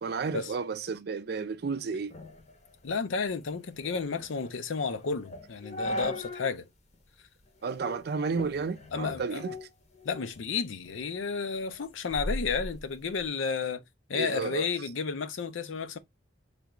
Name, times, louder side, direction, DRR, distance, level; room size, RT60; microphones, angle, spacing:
voice 1, 0.0-2.2 7.6-9.7 14.1-14.7, right 5 dB, 55° right, 0.4 m, -32 dB
sound 1, 2.1-6.6 6.9-7.0 7.7-8.0 8.4-10.4 10.8-13.3, left 1 dB, 35° left, 0.7 m, -39 dB
voice 2, 2.8-6.7 8.9-9.4 10.0-13.8 14.1-16.0, left 5 dB, 90° left, 0.5 m, -32 dB
3.4 x 2.4 x 2.9 m
head